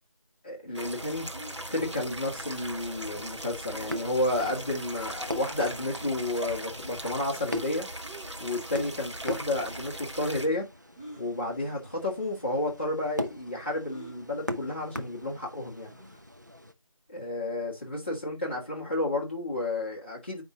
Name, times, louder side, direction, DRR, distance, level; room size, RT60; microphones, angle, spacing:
voice 1, 0.4-1.3 1.7-7.9 8.4-10.7 11.2-15.9 17.1-20.4, left 2 dB, 20° left, 1.9 m, -31 dB
sound 1, 0.7-10.5, right 1 dB, 55° right, 1.6 m, -39 dB
sound 2, 1.3-1.6 3.7-4.0 4.8-4.9 5.7-6.0 8.0-8.3 9.4-9.5 10.9-11.3 12.2-12.3 12.6-12.7 13.9-14.2 15.9-16.2, right 2 dB, 15° right, 3.9 m, -47 dB
sound 3, 2.3-16.7, left 1 dB, 30° right, 0.6 m, -41 dB
9.2 x 5.4 x 2.7 m
figure-of-eight pair, 180°, 18 cm